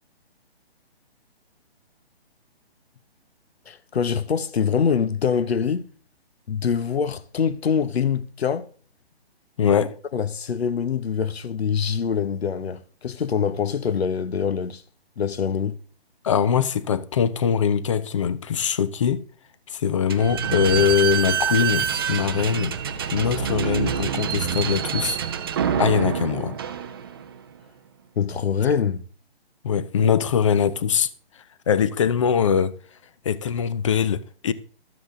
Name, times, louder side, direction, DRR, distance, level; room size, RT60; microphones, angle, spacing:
voice 1, 3.7-5.9 6.5-8.7 10.1-14.8 15.2-15.8 28.2-29.0, left 7 dB, 75° left, 0.9 m, -24 dB
voice 2, 9.6-9.9 16.2-19.2 19.7-22.8 23.1-25.2 25.8-26.6 29.6-31.1 31.7-32.7 33.2-34.5, left 7 dB, 30° left, 0.5 m, -22 dB
Slam / Squeak, 20.1-27.4, right 8 dB, 25° right, 0.5 m, -26 dB
12.5 x 7.8 x 3.7 m
hypercardioid pair, 150°, 31 cm